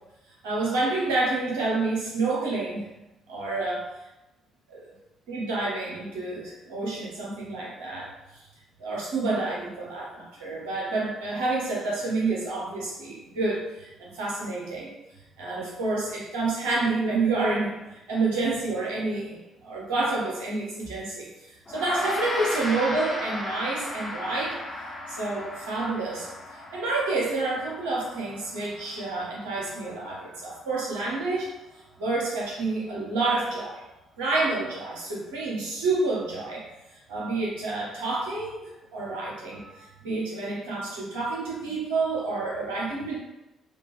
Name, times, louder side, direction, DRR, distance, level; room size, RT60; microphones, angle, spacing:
voice 1, 0.4-2.9 3.3-3.8 4.7-4.8 5.3-8.4 8.8-14.9 15.4-24.6 25.1-31.5 32.0-33.8 34.2-36.7 37.1-43.2, right 3 dB, 80° right, -4 dB, 1.2 m, -29 dB
Gong, 21.7-31.3, left 1 dB, 30° left, 1.5 m, -36 dB
5.0 x 2.6 x 3.4 m, 0.98 s
hypercardioid pair, 50°, 0 cm